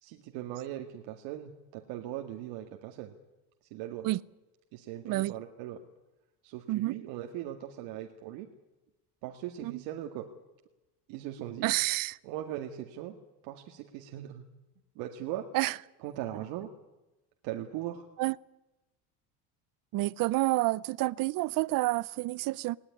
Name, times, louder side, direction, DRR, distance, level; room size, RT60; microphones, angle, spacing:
voice 1, 0.0-3.1 3.7-4.1 4.7-5.8 6.4-8.5 9.2-10.3 11.1-11.7 12.2-13.2 13.4-14.5 15.0-15.5 16.0-16.7 17.4-18.0, right 12 dB, 75° right, 2.2 m, -39 dB
voice 2, 11.6-12.2 15.5-15.8 18.2-18.4 19.9-22.8, right 18 dB, 50° right, 0.7 m, -29 dB
20.0 x 18.5 x 9.8 m
cardioid pair, 125°, 43 cm